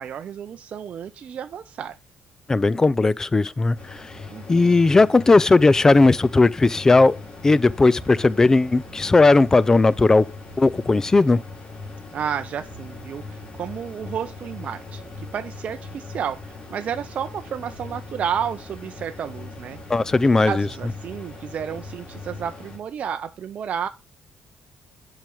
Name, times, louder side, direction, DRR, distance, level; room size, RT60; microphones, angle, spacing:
voice 1, 0.0-2.0 4.3-4.7 12.1-19.8 20.5-23.9, right 8 dB, 55° right, 0.5 m, -31 dB
voice 2, 2.5-4.1 4.5-7.2 7.4-10.3 10.6-11.4 19.9-20.7, left 3 dB, 20° left, 0.4 m, -17 dB
sound 1, 3.7-22.8, left 3 dB, 45° left, 3.1 m, -40 dB
7.4 x 4.9 x 5.3 m
cardioid pair, 90°, 3 cm